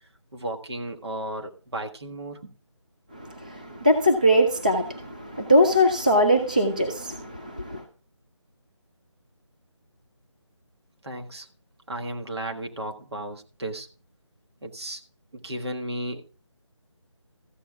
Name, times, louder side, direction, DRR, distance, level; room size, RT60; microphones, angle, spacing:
voice 1, 0.3-2.5 11.0-11.5 11.9-13.9 14.6-15.0 15.3-16.2, right 1 dB, 60° right, 1.6 m, -34 dB
voice 2, 3.1-7.8, equal, 15° right, 0.4 m, -22 dB
14.0 x 8.0 x 3.6 m
figure-of-eight pair, 175°, 16 cm